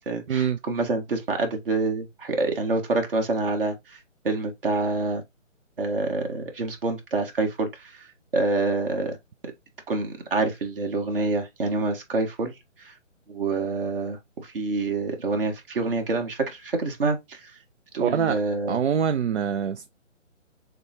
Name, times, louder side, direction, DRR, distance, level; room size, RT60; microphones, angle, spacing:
voice 1, 0.0-4.0 4.2-5.2 5.8-8.1 8.3-9.2 9.9-12.5 12.8-12.9 13.3-17.5 17.9-18.8, right 3 dB, 45° right, 1.5 m, -27 dB
voice 2, 18.0-18.4 18.7-19.9, right 8 dB, 60° right, 0.5 m, -24 dB
6.7 x 2.2 x 2.9 m
hypercardioid pair, 160°, 38 cm